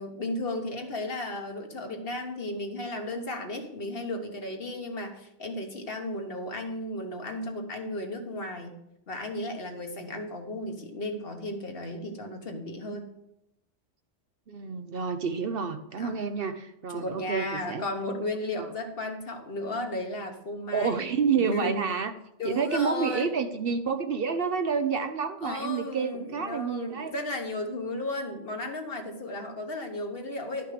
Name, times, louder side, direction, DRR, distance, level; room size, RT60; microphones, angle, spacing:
voice 1, 0.0-8.8 9.1-13.1 16.0-16.2 16.9-21.1 21.4-21.7 22.4-23.3 25.4-30.7, left 1 dB, 55° left, 4 dB, 1.5 m, -34 dB
voice 2, 14.5-17.8 18.6-18.7 20.7-22.1 22.4-27.1, right 6 dB, 55° right, 8 dB, 0.8 m, -29 dB
12.0 x 5.8 x 5.0 m, 0.83 s
omnidirectional pair, 1.2 m